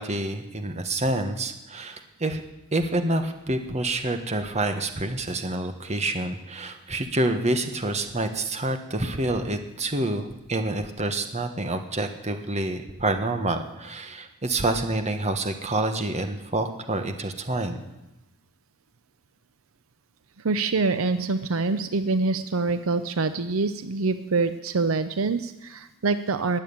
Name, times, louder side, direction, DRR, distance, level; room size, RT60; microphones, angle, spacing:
voice 1, 0.0-2.4 2.7-17.8, right 2 dB, 30° right, 7 dB, 1.4 m, -27 dB
voice 2, 20.4-26.6, right 3 dB, 70° right, 11 dB, 0.7 m, -25 dB
20.5 x 7.7 x 8.8 m, 0.98 s
head